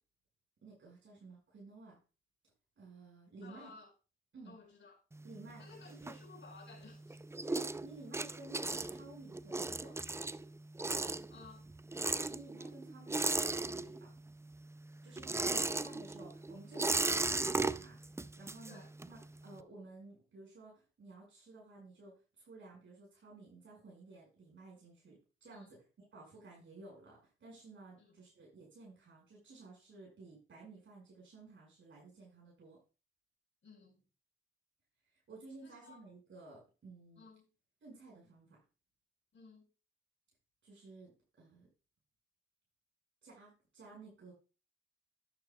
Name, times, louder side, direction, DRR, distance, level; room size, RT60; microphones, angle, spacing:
voice 1, 0.6-2.0 2.8-3.7 4.3-4.5 5.2-5.6 5.9-6.1 7.5-9.9 12.3-14.1 15.0-25.8 26.1-32.8 35.1-37.2 37.8-38.6 40.6-41.1 41.4-41.7 43.2-44.3, right 3 dB, 65° right, 5.5 m, -54 dB
voice 2, 3.4-3.9 4.4-5.0 5.6-7.2 11.3-11.7 18.7-18.9 25.5-25.7 28.0-28.1 33.6-34.0 35.6-36.0 37.2-37.5 39.3-39.7, left 4 dB, 65° left, 4.7 m, -56 dB
sound 1, 5.1-6.7 7.1-14.3 14.5-19.2, right 2 dB, 15° right, 0.4 m, -36 dB
11.0 x 10.5 x 2.3 m
cardioid pair, 65°, 21 cm